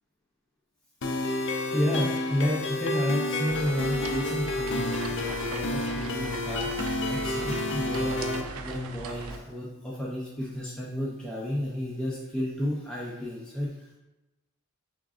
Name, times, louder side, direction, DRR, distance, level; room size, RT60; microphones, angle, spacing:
sound 1, 1.0-8.4, left 2 dB, 55° left, 0.5 m, -30 dB
voice 1, 1.7-6.7 7.1-14.0, left 1 dB, 5° left, -6 dB, 0.5 m, -31 dB
sound 2, 3.5-9.4, right 4 dB, 75° right, 0.5 m, -39 dB
5.7 x 3.6 x 2.4 m, 1.0 s
head